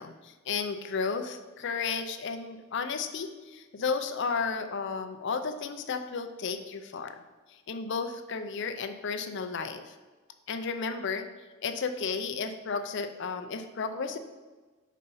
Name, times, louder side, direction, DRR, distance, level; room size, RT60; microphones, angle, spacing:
voice 1, 0.0-7.2 7.5-9.9 10.5-11.3 11.6-14.2, left 5 dB, 60° left, 8 dB, 0.5 m, -33 dB
5.2 x 4.2 x 5.5 m, 1.3 s
head